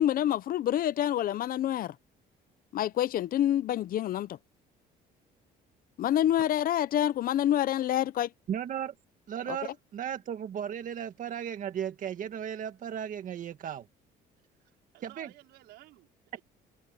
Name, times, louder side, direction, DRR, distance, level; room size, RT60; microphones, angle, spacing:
voice 1, 0.0-1.9 2.7-4.4 6.0-8.3 9.5-9.6, left 11 dB, 55° left, 0.8 m, -27 dB
voice 2, 8.5-8.9 9.3-13.9 15.0-15.3, right 9 dB, 50° right, 1.7 m, -35 dB
voice 3, 14.5-16.4, right 17 dB, 85° right, 5.1 m, -55 dB
cardioid pair, 110°, 17 cm